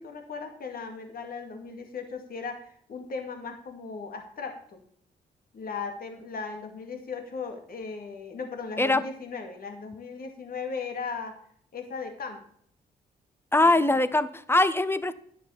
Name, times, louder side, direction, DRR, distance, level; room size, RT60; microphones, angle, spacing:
voice 1, 0.0-4.8 5.5-11.4 11.7-12.4 13.6-14.0, left 5 dB, 65° left, 5 dB, 2.2 m, -37 dB
voice 2, 13.5-15.1, left 2 dB, 15° left, 14 dB, 0.9 m, -22 dB
10.0 x 6.1 x 7.1 m, 0.63 s
cardioid pair, 75°, 17 cm